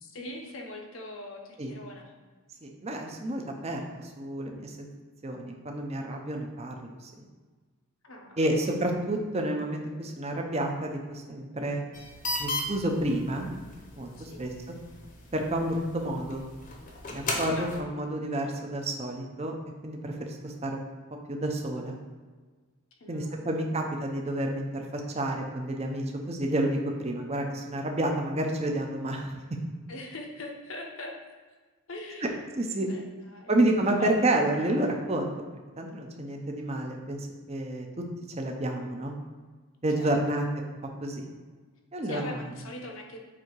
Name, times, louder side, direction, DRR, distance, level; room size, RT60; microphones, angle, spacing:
voice 1, 0.0-2.1 8.0-8.5 14.1-14.4 17.6-17.8 23.0-23.6 29.9-31.2 31.9-32.3 32.9-33.5 34.0-34.1 40.0-40.4 42.0-43.2, left 2 dB, 70° left, 1 dB, 0.9 m, -41 dB
voice 2, 2.6-4.9 5.2-7.3 8.4-11.8 12.4-13.5 14.0-14.5 15.3-16.5 17.1-19.5 19.8-20.8 21.3-22.0 23.1-29.3 32.6-32.9 33.5-35.3 35.8-37.9 38.4-39.1 39.8-40.7 41.0-41.3 41.9-42.3, right 1 dB, 30° right, 2 dB, 0.7 m, -30 dB
sound 1, 11.9-17.8, left 2 dB, 40° left, 0.9 m, -37 dB
7.4 x 2.8 x 4.6 m, 1.4 s
head